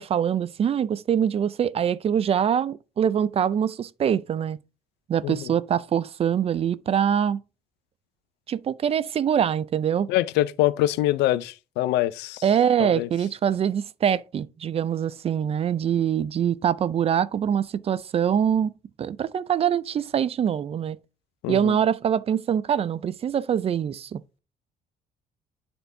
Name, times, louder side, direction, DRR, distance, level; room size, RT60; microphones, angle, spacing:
voice 1, 0.0-4.6 5.1-7.4 8.5-10.1 12.4-18.7 19.0-21.0 21.5-24.4, right 8 dB, 35° right, 0.4 m, -24 dB
voice 2, 10.1-12.4 12.8-13.1 21.4-21.8, left 15 dB, 90° left, 0.4 m, -24 dB
11.0 x 4.4 x 2.6 m
cardioid pair, 110°, 17 cm